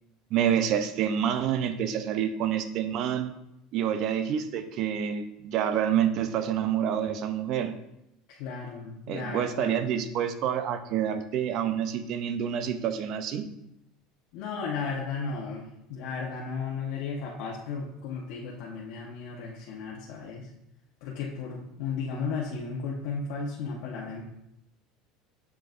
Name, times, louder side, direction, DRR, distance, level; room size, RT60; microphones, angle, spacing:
voice 1, 0.3-3.3 3.7-7.8 9.1-13.5, right 9 dB, 45° right, 10 dB, 0.5 m, -28 dB
voice 2, 8.3-9.8 14.3-20.5 21.0-24.2, left 5 dB, 65° left, -4 dB, 1.0 m, -35 dB
8.0 x 6.0 x 2.5 m, 0.83 s
cardioid pair, 155°, 0 cm